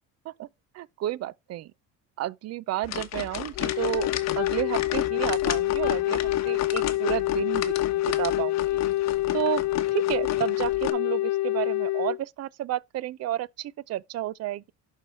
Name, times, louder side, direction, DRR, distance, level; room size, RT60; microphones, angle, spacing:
voice 1, 0.7-1.7 2.2-4.1 4.4-8.8 9.3-9.6 9.9-14.7, right 14 dB, 50° right, 0.5 m, -31 dB
sound 1, 2.8-10.9, left 11 dB, 50° left, 1.2 m, -33 dB
Wind instrument woodwind instrument, 3.6-12.2, left 17 dB, 90° left, 0.6 m, -27 dB
11.5 x 4.7 x 4.4 m
cardioid pair, 120°, 34 cm